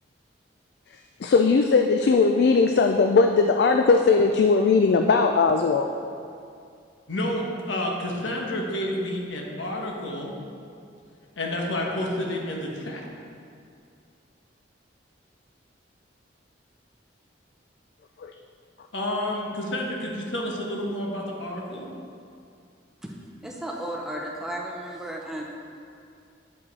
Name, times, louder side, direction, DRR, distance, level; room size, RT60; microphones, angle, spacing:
voice 1, 0.9-5.9 18.2-18.4 18.8-18.9, left 4 dB, 60° left, 4 dB, 0.3 m, -19 dB
voice 2, 7.1-10.3 11.4-13.1 18.9-21.9, left 1 dB, 85° left, -1 dB, 1.2 m, -30 dB
voice 3, 23.4-25.4, right 1 dB, ahead, -2 dB, 0.6 m, -34 dB
8.3 x 5.4 x 4.1 m, 2.4 s
head